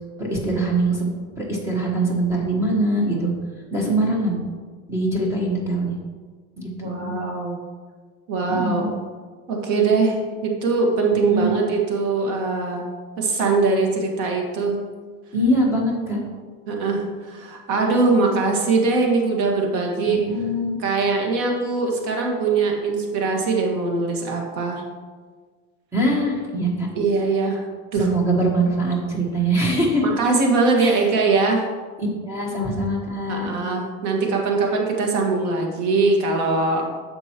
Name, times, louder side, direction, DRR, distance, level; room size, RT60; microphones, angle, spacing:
voice 1, 0.2-1.1 1.3-3.3 3.7-4.4 4.9-6.0 6.6-7.2 8.5-8.9 11.2-11.6 15.3-16.2 20.0-20.8 25.9-26.9 28.0-30.0 30.8-31.0 32.0-33.5, right 1 dB, 10° right, -2 dB, 1.3 m, -23 dB
voice 2, 6.8-7.6 8.3-8.9 9.5-12.8 13.2-14.8 16.7-20.2 20.8-24.8 27.0-27.6 27.9-28.1 30.0-31.7 33.3-37.0, right 3 dB, 90° right, 0 dB, 1.9 m, -21 dB
10.0 x 6.9 x 3.0 m, 1.5 s
cardioid pair, 180°, 32 cm